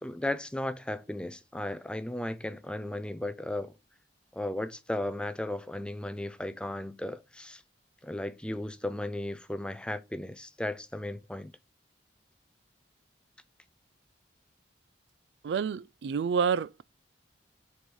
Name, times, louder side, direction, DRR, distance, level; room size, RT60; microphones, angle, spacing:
voice 1, 0.0-3.7 4.3-7.6 8.0-11.5, left 1 dB, 5° left, 0.4 m, -35 dB
voice 2, 15.4-16.8, right 6 dB, 70° right, 0.3 m, -28 dB
6.2 x 4.7 x 5.3 m
head